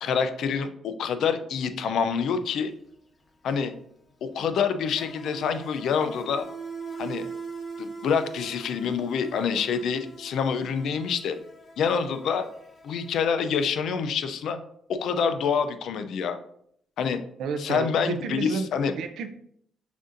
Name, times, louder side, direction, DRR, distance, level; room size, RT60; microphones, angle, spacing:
voice 1, 0.0-2.7 3.4-3.7 4.2-6.5 7.0-7.3 7.8-11.4 11.8-12.4 12.8-14.6 14.9-16.4 17.0-17.2 17.6-18.9, left 6 dB, 75° left, 9 dB, 0.4 m, -26 dB
Insect, 2.3-2.4 2.7-13.7, right 4 dB, 40° left, 1.3 m, -42 dB
voice 2, 17.4-18.7 18.9-19.3, right 5 dB, 75° right, 9 dB, 0.4 m, -31 dB
6.1 x 2.6 x 2.6 m, 0.69 s
cardioid pair, 90°, 0 cm